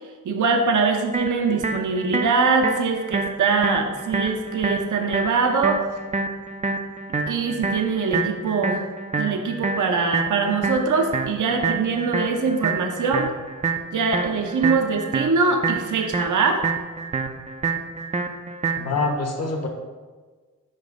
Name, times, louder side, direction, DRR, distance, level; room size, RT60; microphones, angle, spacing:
voice 1, 0.2-5.8 7.3-8.8 9.2-13.3 13.9-16.6, right 4 dB, 55° right, 4 dB, 0.8 m, -22 dB
sound 1, 1.1-19.1, right 3 dB, 20° right, 0.5 m, -28 dB
voice 2, 18.8-19.7, left 3 dB, 45° left, 1 dB, 1.0 m, -25 dB
5.4 x 4.9 x 3.6 m, 1.4 s
cardioid pair, 50°, 36 cm